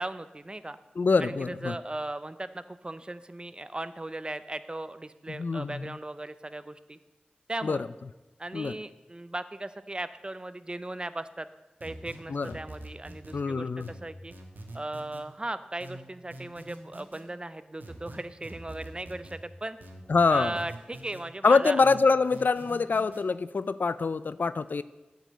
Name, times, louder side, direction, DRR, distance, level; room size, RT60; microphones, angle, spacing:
voice 1, 0.0-0.8 1.2-7.0 7.5-7.8 8.4-11.5 11.8-14.3 14.7-19.8 20.3-21.8, right 2 dB, 30° right, 13 dB, 0.5 m, -37 dB
voice 2, 1.0-1.8 5.3-6.0 7.6-7.8 8.5-8.7 12.3-12.5 13.3-13.9 20.1-20.6 21.4-24.8, left 4 dB, 75° left, 16 dB, 0.3 m, -25 dB
sound 1, 11.8-13.4 13.8-15.2 15.8-17.2 17.8-19.4 19.8-21.2 21.8-23.2, right 1 dB, 85° right, 1.3 m, -45 dB
9.0 x 5.1 x 7.8 m, 1.1 s
cardioid pair, 45°, 3 cm